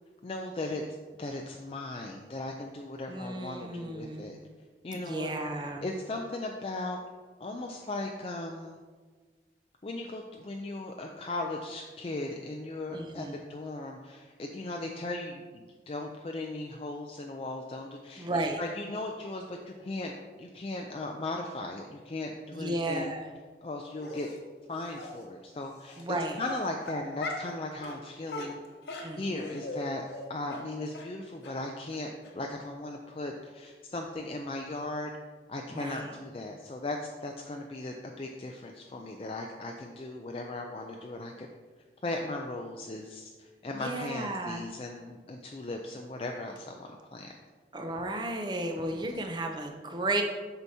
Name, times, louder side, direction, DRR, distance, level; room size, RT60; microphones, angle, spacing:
voice 1, 0.2-0.8 1.2-4.4 4.8-5.3 5.8-7.0 7.4-8.8 9.8-23.1 23.6-24.3 24.7-26.0 26.4-28.6 29.2-35.1 35.5-41.5 42.0-47.3 48.9-49.2, left 2 dB, 35° left, 2 dB, 0.4 m, -37 dB
voice 2, 3.1-4.3 4.9-5.8 12.9-13.4 18.2-18.6 22.5-23.3 26.0-26.4 29.0-29.6 35.7-36.1 43.7-44.6 47.7-50.2, right 2 dB, 25° right, 4 dB, 0.6 m, -34 dB
Dog, 24.0-24.4 25.0-25.1 25.9-26.0 26.4-27.5 27.8-28.0 28.3-29.8 30.1-30.2 30.5-30.6 30.9-31.1 31.4-31.5 31.9-32.0 32.2-32.3, left 2 dB, 75° left, 1.0 m, -39 dB
8.0 x 5.6 x 2.7 m, 1.4 s
head